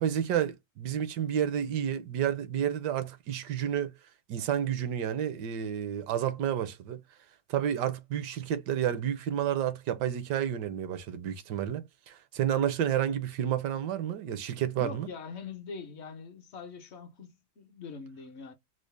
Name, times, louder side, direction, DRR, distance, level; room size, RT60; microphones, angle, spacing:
voice 1, 0.0-4.0 4.3-7.0 7.5-15.1, right 10 dB, 75° right, 1.2 m, -30 dB
voice 2, 14.8-18.5, left 5 dB, 60° left, 0.7 m, -43 dB
3.8 x 2.1 x 3.2 m
omnidirectional pair, 2.0 m